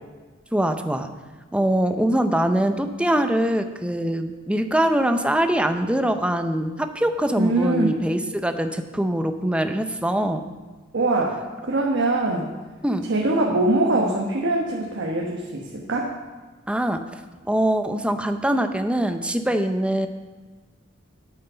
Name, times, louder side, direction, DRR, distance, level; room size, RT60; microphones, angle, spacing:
voice 1, 0.5-1.1 1.5-10.4 12.8-13.0 16.7-17.0 17.4-20.1, right 1 dB, 5° right, 7 dB, 0.6 m, -23 dB
voice 2, 7.4-8.0 10.9-12.5 13.1-16.1, right 2 dB, 65° right, -1 dB, 1.2 m, -23 dB
9.3 x 8.7 x 5.7 m, 1.4 s
head